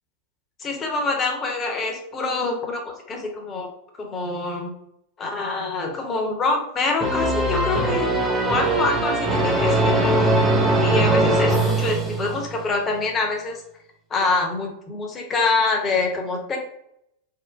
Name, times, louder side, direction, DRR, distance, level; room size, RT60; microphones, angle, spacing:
voice 1, 0.6-3.7 4.0-4.7 5.2-10.3 10.8-13.6 14.1-16.6, left 3 dB, 25° left, 1 dB, 0.8 m, -25 dB
sound 1, 7.0-12.6, right 2 dB, 15° right, 0.7 m, -21 dB
3.6 x 2.1 x 2.5 m, 0.77 s
figure-of-eight pair, 90°, 0 cm